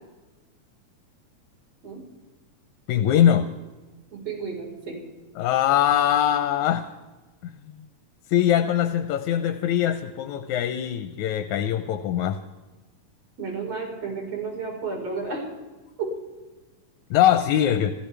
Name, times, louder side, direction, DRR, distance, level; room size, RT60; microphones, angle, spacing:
voice 1, 2.9-3.5 5.4-6.9 7.4-7.5 8.3-12.4 17.1-17.9, left 10 dB, 80° left, 9 dB, 2.2 m, -22 dB
voice 2, 4.1-5.0 13.4-15.4 16.0-16.1, right 4 dB, 55° right, -2 dB, 5.7 m, -32 dB
28.5 x 14.0 x 3.4 m, 1.2 s
omnidirectional pair, 3.4 m